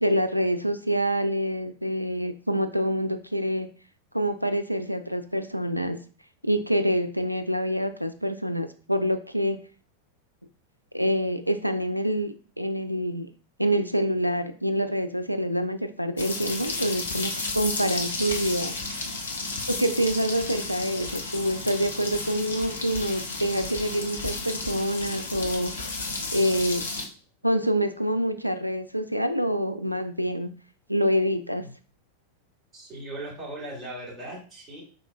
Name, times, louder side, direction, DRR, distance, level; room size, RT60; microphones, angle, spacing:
voice 1, 0.0-3.7 4.1-6.0 6.4-9.6 10.9-13.3 13.6-18.7 19.7-25.7 26.3-26.8 27.4-30.5 30.9-31.7, equal, 90° right, 9 dB, 0.4 m, -26 dB
sound 1, 16.2-27.0, left 3 dB, 70° left, 0.8 m, -33 dB
voice 2, 32.7-34.8, right 1 dB, 15° right, -6 dB, 2.3 m, -38 dB
5.3 x 3.8 x 2.2 m, 0.39 s
figure-of-eight pair, 90°, 0 cm